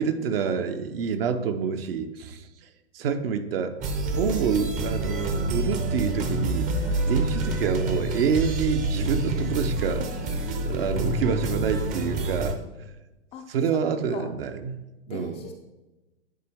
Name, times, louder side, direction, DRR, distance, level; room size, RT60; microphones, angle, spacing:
voice 1, 0.0-2.5 2.9-3.8 4.1-6.7 7.0-10.1 10.7-12.9 13.5-15.4, right 6 dB, 55° right, 9 dB, 0.8 m, -27 dB
sound 1, 3.8-12.5, right 2 dB, 20° right, 0.6 m, -27 dB
voice 2, 15.1-15.5, left 6 dB, 15° left, 3 dB, 0.4 m, -40 dB
10.0 x 4.4 x 3.5 m, 1.1 s
hypercardioid pair, 115°, 35 cm